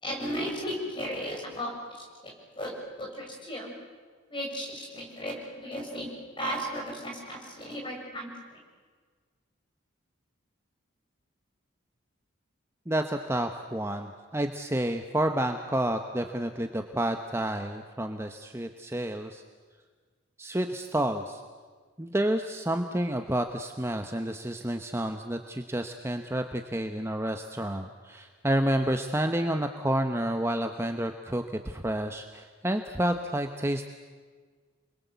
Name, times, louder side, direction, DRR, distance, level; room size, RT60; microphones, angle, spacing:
voice 1, 0.0-1.7 2.6-3.7 4.3-6.1 6.4-8.3, equal, 25° left, 0 dB, 7.0 m, -35 dB
voice 2, 12.9-19.4 20.4-21.4 22.0-33.9, right 1 dB, 15° right, 6 dB, 1.0 m, -30 dB
28.5 x 22.0 x 8.3 m, 1.5 s
head